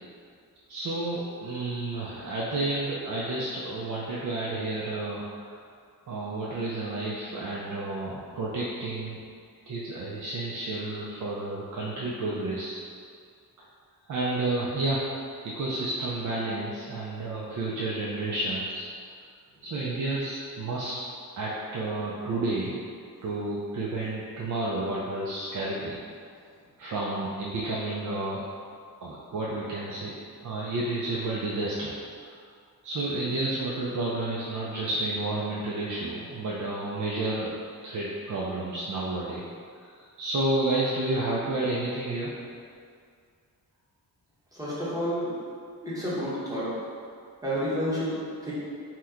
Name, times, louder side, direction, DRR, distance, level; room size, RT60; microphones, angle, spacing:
voice 1, 0.7-5.6 6.1-9.2 9.7-12.8 13.6-13.7 14.1-15.0 15.4-18.8 19.6-21.0 21.4-22.8 23.2-26.0 26.8-28.4 29.0-30.1 30.4-32.0 32.8-37.5 37.8-39.4 39.8-42.3, right 2 dB, 55° right, -6 dB, 0.4 m, -31 dB
voice 2, 44.5-45.3 45.8-46.7 47.4-48.5, equal, 10° right, -10 dB, 0.9 m, -30 dB
2.9 x 2.1 x 3.6 m, 2.2 s
wide cardioid pair, 120°, 38 cm